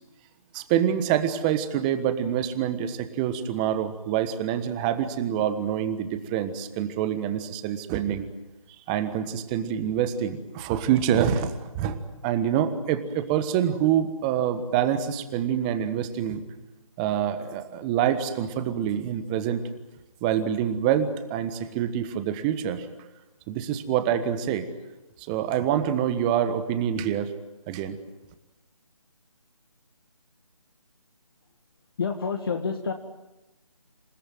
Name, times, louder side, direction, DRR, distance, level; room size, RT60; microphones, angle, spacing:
voice 1, 0.5-8.3 8.9-16.4 17.0-19.6 20.2-22.9 23.5-24.7 25.3-27.3 27.7-28.0, right 9 dB, 15° right, 10 dB, 1.3 m, -26 dB
voice 2, 32.0-32.9, left 5 dB, 40° left, 4 dB, 2.1 m, -28 dB
27.5 x 17.0 x 9.3 m, 1.0 s
figure-of-eight pair, 160°, 18 cm